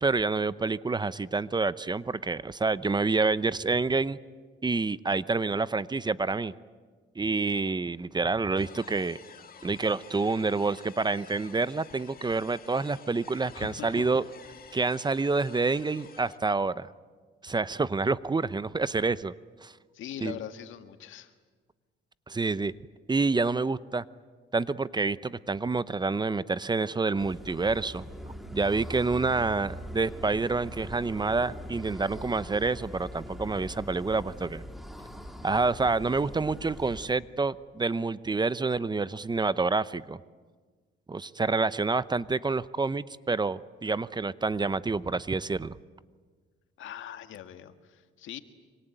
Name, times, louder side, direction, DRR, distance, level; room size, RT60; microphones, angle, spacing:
voice 1, 0.0-4.2 4.6-6.5 7.2-9.2 9.6-14.2 14.7-16.9 17.4-19.3 19.6-19.7 20.2-20.3 22.3-22.7 23.1-24.0 24.5-28.1 28.5-34.6 35.4-40.2 41.1-45.8, right 3 dB, 20° right, 16 dB, 0.7 m, -28 dB
sound 1, 8.6-16.4, left 7 dB, 45° left, 2.2 m, -51 dB
voice 2, 13.5-14.1 19.9-21.3 46.8-48.4, left 10 dB, 80° left, 8 dB, 1.8 m, -41 dB
sound 2, 27.2-37.1, equal, ahead, 2.8 m, -42 dB
26.0 x 25.0 x 9.1 m, 1.5 s
cardioid pair, 90°, 20 cm